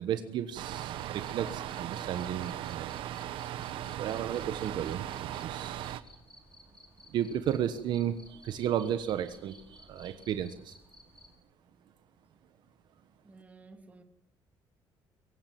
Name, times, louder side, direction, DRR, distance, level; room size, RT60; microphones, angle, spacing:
voice 1, 0.0-3.6 3.9-6.0 7.1-10.8, right 10 dB, 60° right, 1.2 m, -34 dB
sound 1, 0.6-6.0, right 12 dB, 75° right, 1.2 m, -38 dB
Cricket, 0.7-11.3, left 1 dB, 10° left, 3.9 m, -57 dB
voice 2, 13.2-14.0, right 3 dB, 15° right, 2.4 m, -53 dB
23.5 x 16.5 x 7.7 m
cardioid pair, 170°, 9 cm